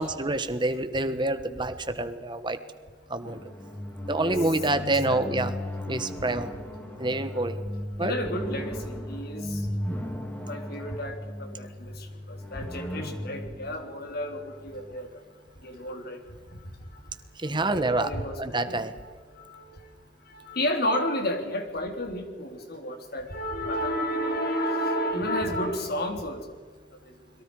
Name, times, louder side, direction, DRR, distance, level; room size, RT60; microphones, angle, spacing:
voice 1, 0.0-2.6 3.1-3.4 4.1-5.5 5.9-6.5 7.0-7.6 8.0-8.1 17.4-18.1 18.4-18.9, right 2 dB, 25° right, 9 dB, 1.4 m, -27 dB
sound 1, 3.2-14.9, left 1 dB, 10° left, 3.2 m, -36 dB
voice 2, 4.1-4.4 5.1-5.2 8.0-9.7 10.4-15.2 15.6-16.2 16.5-16.6 17.6-19.8 20.3-26.5 27.0-27.1, equal, 55° left, 4 dB, 3.5 m, -32 dB
29.5 x 22.5 x 4.9 m, 1.5 s
head